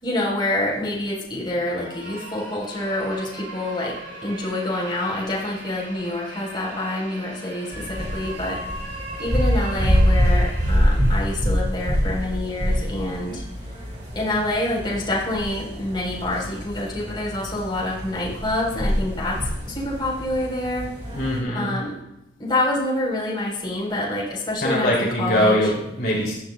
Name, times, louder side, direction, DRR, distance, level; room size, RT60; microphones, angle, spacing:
voice 1, 0.0-3.9 4.2-8.6 9.2-13.4 14.1-19.4 19.7-20.9 21.5-22.0 22.4-25.7, left 1 dB, 25° left, -4 dB, 3.9 m, -27 dB
sound 1, 1.6-11.5, right 2 dB, 65° right, 2.5 m, -39 dB
sound 2, 7.7-21.4, equal, 35° right, 2.4 m, -25 dB
voice 2, 21.1-21.8 24.6-26.3, equal, 50° left, -4 dB, 2.8 m, -22 dB
15.0 x 12.0 x 2.3 m, 0.91 s
head